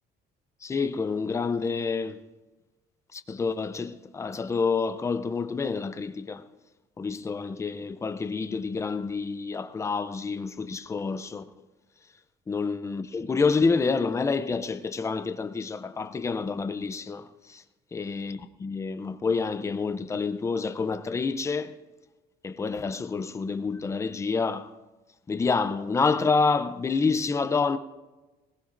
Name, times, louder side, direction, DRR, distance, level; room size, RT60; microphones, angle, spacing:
voice 1, 0.6-2.2 3.1-6.4 7.0-11.4 12.5-17.6 17.9-21.7 22.4-24.7 25.3-27.8, left 4 dB, 15° left, 0.5 m, -28 dB
20.5 x 20.0 x 2.6 m
cardioid pair, 175°, 18 cm